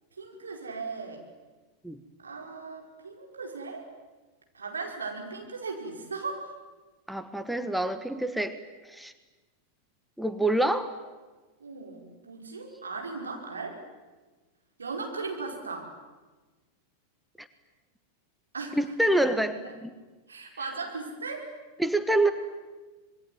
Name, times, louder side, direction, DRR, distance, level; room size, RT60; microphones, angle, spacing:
voice 1, 0.2-1.2 2.2-3.9 4.5-6.5 11.6-13.8 14.8-15.9 18.5-18.8 20.3-21.5, right 4 dB, 75° right, 2 dB, 5.0 m, -37 dB
voice 2, 7.1-8.6 8.8-9.1 10.2-10.9 17.4-17.5 18.8-19.9 21.8-22.3, right 1 dB, ahead, 10 dB, 1.3 m, -26 dB
26.5 x 21.5 x 9.4 m, 1.3 s
figure-of-eight pair, 90°, 0 cm